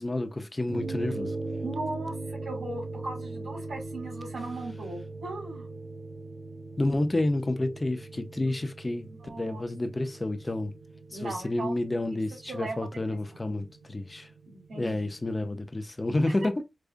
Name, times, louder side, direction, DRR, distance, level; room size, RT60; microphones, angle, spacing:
voice 1, 0.0-1.3 6.8-9.1 9.4-10.7 11.1-14.3 14.7-16.6, left 2 dB, 20° left, 0.5 m, -30 dB
sound 1, 0.7-15.2, right 3 dB, 60° right, 0.8 m, -40 dB
voice 2, 1.6-5.7 9.0-9.6 11.1-11.8 12.4-12.9 14.4-15.1 16.4-16.5, right 2 dB, 90° right, 2.5 m, -38 dB
4.9 x 2.3 x 2.4 m
wide cardioid pair, 135°, 0 cm